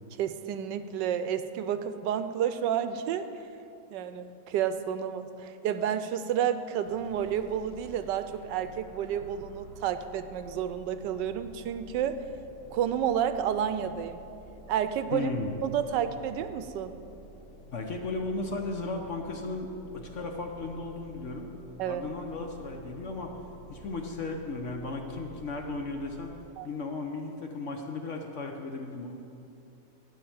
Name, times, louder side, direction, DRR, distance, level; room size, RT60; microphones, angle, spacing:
voice 1, 0.2-3.3 3.9-12.2 12.7-14.2 14.7-15.3 15.6-17.0 21.8-22.1 26.6-26.7, right 9 dB, 80° right, 11 dB, 1.2 m, -30 dB
sound 1, 6.8-26.5, equal, 70° left, 1.9 m, -50 dB
voice 2, 15.1-15.5 17.7-21.5 21.8-23.3 23.7-26.3 26.6-29.1, left 3 dB, 55° left, 3 dB, 1.0 m, -35 dB
12.0 x 5.6 x 8.5 m, 2.7 s
omnidirectional pair, 1.9 m